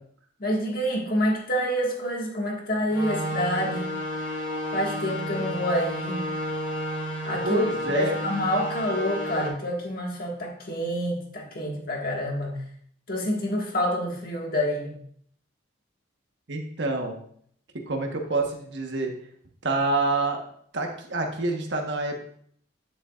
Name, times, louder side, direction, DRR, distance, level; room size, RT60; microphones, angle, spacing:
voice 1, 0.4-3.9 4.7-6.2 7.2-7.6 7.9-12.6 13.1-15.0, equal, 45° left, -1 dB, 1.8 m, -27 dB
sound 1, 2.9-9.5, equal, 65° left, 2.6 m, -31 dB
voice 2, 7.4-8.2 16.5-17.2 17.9-19.1 19.6-20.4 20.7-22.2, right 2 dB, 65° right, 2 dB, 1.3 m, -27 dB
10.0 x 7.3 x 2.5 m, 0.63 s
head